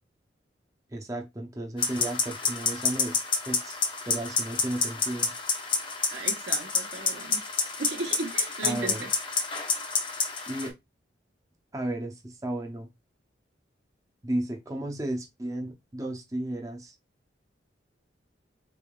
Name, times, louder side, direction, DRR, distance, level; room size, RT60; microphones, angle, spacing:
voice 1, 0.9-3.8 4.1-5.3 8.6-9.1 10.5-10.7 11.7-12.9 14.2-16.9, right 1 dB, 20° right, 0.6 m, -34 dB
sound 1, 1.8-10.7, left 5 dB, 25° left, 0.7 m, -29 dB
voice 2, 6.1-7.4 7.8-9.1, right 2 dB, 70° right, 0.9 m, -35 dB
4.0 x 3.5 x 2.3 m
head